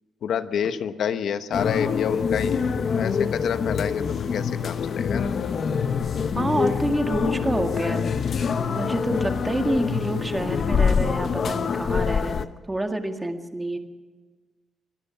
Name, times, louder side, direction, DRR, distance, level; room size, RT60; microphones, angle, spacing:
voice 1, 0.2-2.6 2.9-5.3, left 8 dB, 70° left, 10 dB, 1.2 m, -28 dB
sound 1, 1.5-12.4, left 6 dB, 45° left, 1.0 m, -25 dB
voice 2, 6.3-8.1 8.6-12.4 12.7-13.8, right 1 dB, 10° right, 5 dB, 1.9 m, -27 dB
25.0 x 18.0 x 5.9 m, 1.4 s
wide cardioid pair, 150°, 0 cm